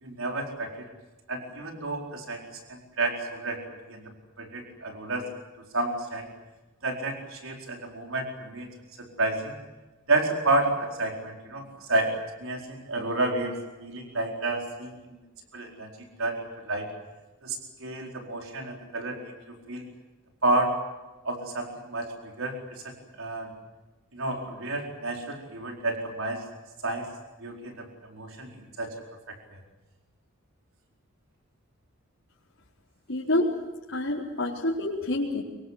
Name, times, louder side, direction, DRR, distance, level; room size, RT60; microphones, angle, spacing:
voice 1, 0.0-0.9 1.3-3.6 3.9-4.0 4.4-5.3 5.7-6.3 6.8-8.7 9.0-9.6 10.1-12.1 12.4-13.5 13.8-15.2 15.5-15.9 16.2-16.4 16.7-16.9 17.4-19.8 20.4-20.7 21.2-22.1 22.4-22.8 23.2-23.5 24.1-26.4 26.8-27.1 27.4-27.9 28.1-28.5 28.8-28.9 29.3-29.4, right 2 dB, 80° right, 1 dB, 4.5 m, -30 dB
voice 2, 33.1-33.5 33.9-35.4, left 1 dB, 70° left, -6 dB, 4.5 m, -27 dB
26.0 x 23.5 x 8.2 m, 1.1 s
head